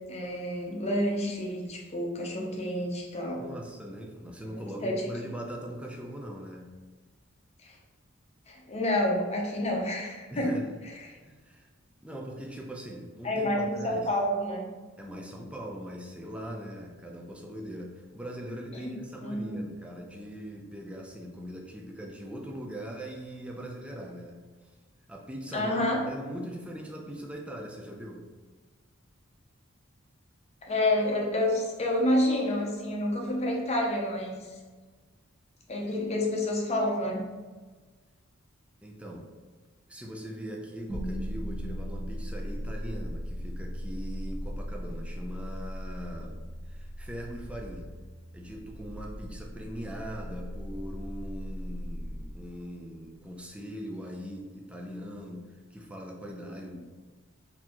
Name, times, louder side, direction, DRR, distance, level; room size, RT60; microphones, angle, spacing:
voice 1, 0.1-3.4 4.8-5.0 7.6-7.7 8.5-10.6 13.2-14.7 18.7-19.6 25.5-26.0 30.7-34.5 35.7-37.3, left 1 dB, 30° left, -1 dB, 0.7 m, -29 dB
voice 2, 3.3-6.7 10.3-10.7 11.2-11.7 12.0-14.1 15.0-24.4 25.1-25.7 26.1-28.3 38.8-39.3 39.9-46.4 46.7-47.9 48.3-56.8, equal, 5° right, 0 dB, 0.4 m, -41 dB
sound 1, 40.9-53.0, equal, 30° right, 0.9 m, -38 dB
4.1 x 2.8 x 2.9 m, 1.3 s
head